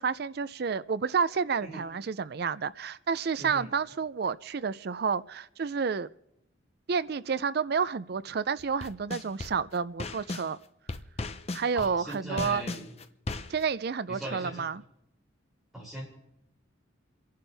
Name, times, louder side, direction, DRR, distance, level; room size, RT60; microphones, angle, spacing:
voice 1, 0.0-6.1 6.9-10.6 11.5-12.6 13.5-14.8, right 5 dB, 50° right, 17 dB, 0.4 m, -30 dB
voice 2, 3.4-3.7 11.7-12.9 14.1-14.6 15.7-16.1, equal, ahead, -6 dB, 6.4 m, -39 dB
sound 1, 8.6-10.5 10.9-13.6, left 2 dB, 30° left, 0.7 m, -36 dB
29.0 x 11.0 x 3.4 m, 0.83 s
head